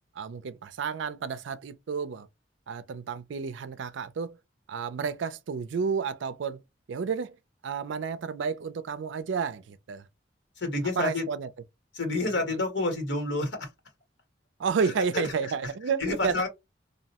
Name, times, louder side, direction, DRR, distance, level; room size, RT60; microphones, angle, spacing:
voice 1, 0.2-2.3 2.7-4.4 4.7-6.6 6.9-7.4 7.6-10.0 11.0-11.5 14.6-16.5, right 5 dB, 80° right, 0.4 m, -31 dB
voice 2, 10.5-11.2 11.9-13.7 14.8-15.7 16.0-16.5, left 2 dB, 80° left, 1.5 m, -29 dB
2.7 x 2.0 x 2.8 m
head